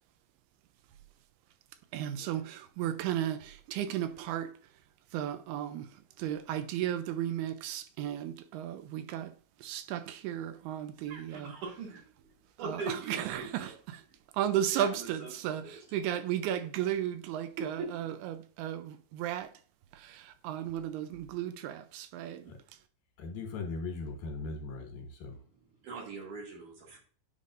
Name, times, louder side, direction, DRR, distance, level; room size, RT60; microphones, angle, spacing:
voice 1, 1.9-4.5 5.1-5.9 6.2-9.3 9.6-11.6 12.6-14.0 14.3-19.5 19.9-22.5, right 11 dB, 80° right, 2.5 m, -34 dB
voice 2, 11.1-12.0 12.6-13.7 14.7-15.8 17.6-17.9 25.8-27.0, right 4 dB, 60° right, 2.6 m, -41 dB
voice 3, 23.2-25.4, left 3 dB, 70° left, 2.8 m, -39 dB
9.3 x 5.1 x 2.5 m
omnidirectional pair, 4.6 m